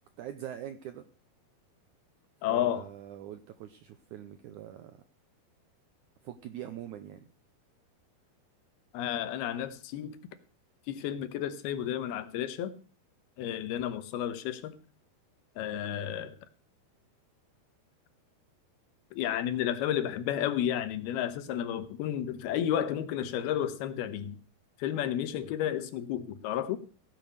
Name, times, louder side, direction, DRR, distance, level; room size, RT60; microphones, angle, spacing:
voice 1, 0.2-1.0 2.5-5.0 6.2-7.3, right 11 dB, 85° right, 1.7 m, -43 dB
voice 2, 2.4-2.9 8.9-10.2 10.9-12.7 13.4-14.7 15.6-16.4 19.1-24.4 24.8-26.8, left 10 dB, 80° left, 3.0 m, -32 dB
16.5 x 7.0 x 6.5 m
omnidirectional pair, 4.5 m